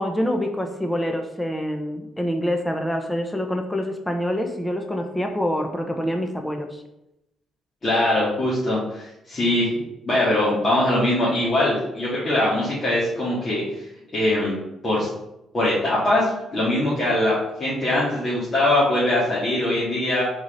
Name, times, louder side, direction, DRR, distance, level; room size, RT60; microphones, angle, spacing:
voice 1, 0.0-6.7, equal, 10° left, 4 dB, 0.8 m, -26 dB
voice 2, 7.8-9.7 10.1-13.6 14.1-14.6 14.8-15.1 15.5-17.3 17.6-20.2, left 1 dB, 35° left, -9 dB, 2.3 m, -22 dB
4.6 x 4.2 x 5.2 m, 0.87 s
cardioid pair, 90°, 0 cm